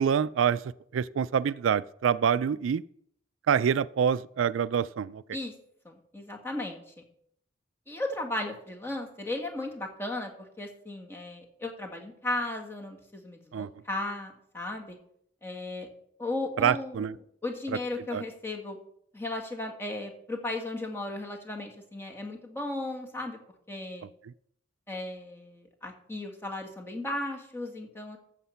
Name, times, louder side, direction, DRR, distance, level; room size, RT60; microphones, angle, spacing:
voice 1, 0.0-2.8 3.5-5.2 13.5-13.7 16.6-17.2 18.1-18.2, right 7 dB, 80° right, 0.4 m, -26 dB
voice 2, 5.9-6.9 7.9-15.0 15.4-15.9 16.2-17.1 17.4-18.8 19.1-23.4 23.7-24.1 24.9-28.2, left 2 dB, 10° left, 1.8 m, -36 dB
13.5 x 7.3 x 5.7 m
head